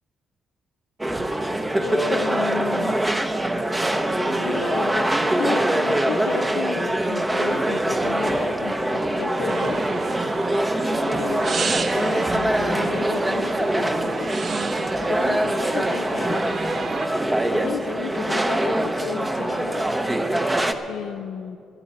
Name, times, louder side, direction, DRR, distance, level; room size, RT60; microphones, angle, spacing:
sound 1, 1.0-20.7, right 1 dB, 15° right, 0.9 m, -23 dB
voice 1, 1.8-3.0 4.4-5.1 5.4-9.8 10.9-14.3 15.0-16.4 17.5-19.9 20.9-21.6, left 9 dB, 80° left, 8 dB, 0.5 m, -33 dB
sound 2, 4.2-5.3, right 5 dB, 80° right, 2.8 m, -36 dB
sound 3, 9.5-17.1, right 4 dB, 45° right, 0.9 m, -32 dB
12.5 x 9.8 x 9.1 m, 2.5 s
cardioid pair, 90°, 0 cm